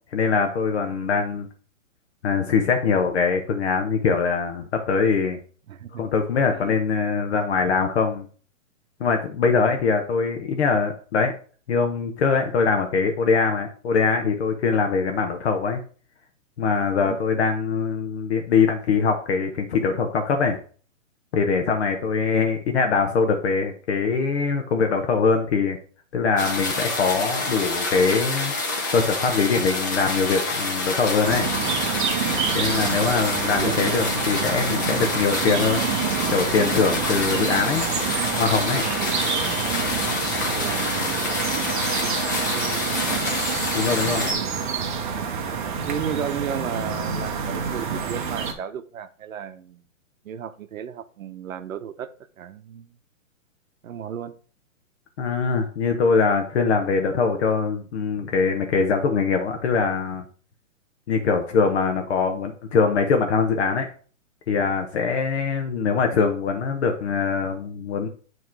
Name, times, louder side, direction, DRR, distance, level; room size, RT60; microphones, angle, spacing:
voice 1, 0.1-1.5 2.2-5.4 5.9-8.3 9.0-11.4 11.7-15.8 16.6-20.6 21.3-25.8 26.1-28.5 28.9-31.5 32.5-35.9 36.3-37.8 38.4-38.8 43.7-44.3 55.2-60.2 61.1-63.9 64.5-68.1, left 5 dB, 55° left, 4 dB, 0.8 m, -22 dB
voice 2, 5.7-6.1 6.5-6.7 9.5-9.6 17.0-17.2 32.7-33.2 33.5-34.0 40.3-43.2 45.8-49.8 50.2-52.1 52.4-52.9 53.8-54.4, right 9 dB, 80° right, 11 dB, 0.7 m, -34 dB
sound 1, 26.4-44.3, left 2 dB, 15° left, 0.4 m, -27 dB
sound 2, 31.2-48.5, right 6 dB, 40° right, 0.8 m, -27 dB
7.3 x 3.1 x 4.4 m, 0.42 s
hypercardioid pair, 155°, 40 cm